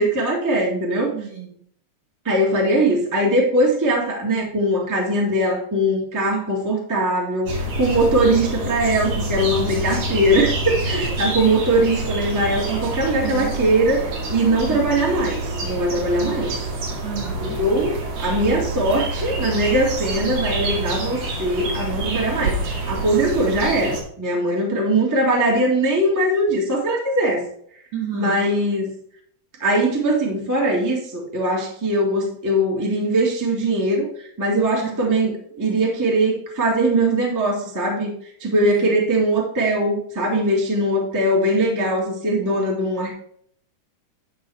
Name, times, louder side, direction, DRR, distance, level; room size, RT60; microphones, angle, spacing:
voice 1, 0.0-1.1 2.2-7.5 7.8-14.0 14.3-16.5 17.4-27.5 28.1-28.9 29.6-34.1 34.4-38.1 38.4-43.1, right 1 dB, 10° right, -2 dB, 1.2 m, -21 dB
voice 2, 1.1-1.6 10.9-11.0 12.7-13.6 14.5-14.9 17.0-17.6 27.9-28.4 34.8-34.9 38.6-39.0, right 7 dB, 45° right, -3 dB, 1.8 m, -31 dB
sound 1, 7.4-24.0, right 2 dB, 80° right, 3.6 m, -27 dB
11.0 x 3.8 x 4.7 m, 0.63 s
omnidirectional pair, 3.6 m